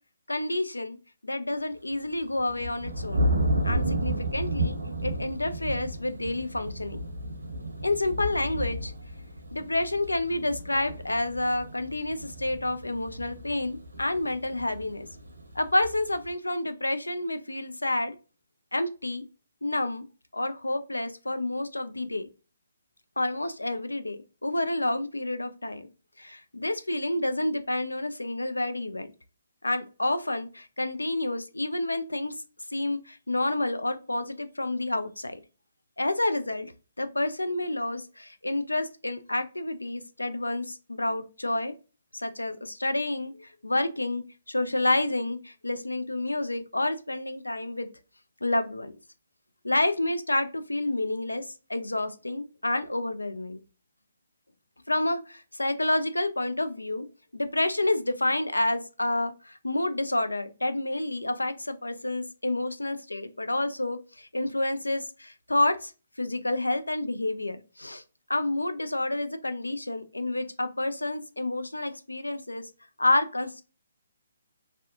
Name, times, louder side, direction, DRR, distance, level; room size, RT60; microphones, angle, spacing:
voice 1, 0.3-1.0 1.2-3.3 3.6-4.8 5.0-7.0 7.8-8.9 9.5-15.1 15.5-18.2 18.7-19.2 19.6-20.0 20.3-22.3 23.2-25.9 26.2-29.1 29.6-32.4 32.7-35.4 36.0-36.7 37.0-41.7 42.1-47.9 48.4-49.0 49.6-53.6 54.9-57.1 57.3-65.9 66.2-68.0 68.3-72.7 73.0-73.6, left 2 dB, 90° left, 9 dB, 0.4 m, -29 dB
sound 1, 2.0-16.3, right 1 dB, 80° right, 0.7 m, -32 dB
2.7 x 2.1 x 2.3 m, 0.33 s
figure-of-eight pair, 140°, 0 cm